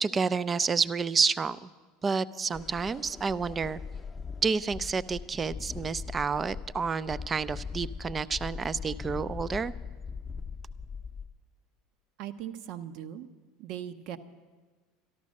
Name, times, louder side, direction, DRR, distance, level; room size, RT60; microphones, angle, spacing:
voice 1, 0.0-1.7 2.0-3.8 4.4-9.7, right 5 dB, 25° right, 17 dB, 0.4 m, -29 dB
sound 1, 2.5-11.3, left 5 dB, 20° left, 0.7 m, -40 dB
voice 2, 12.2-13.3 13.6-14.2, right 10 dB, 60° right, 12 dB, 0.8 m, -39 dB
13.0 x 12.0 x 6.4 m, 1.3 s
hypercardioid pair, 100°, 0 cm